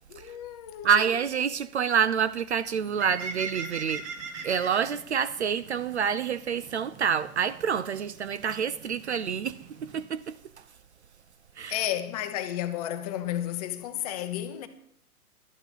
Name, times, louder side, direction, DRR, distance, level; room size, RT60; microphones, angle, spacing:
voice 1, 0.1-1.0 11.7-14.7, left 12 dB, 25° left, 0.8 m, -32 dB
voice 2, 0.8-4.1 4.4-10.4 11.6-11.8, right 7 dB, 50° right, 0.5 m, -27 dB
Bird, 2.7-10.0, right 4 dB, 30° right, 1.5 m, -42 dB
11.5 x 8.8 x 5.5 m
figure-of-eight pair, 120°, 45 cm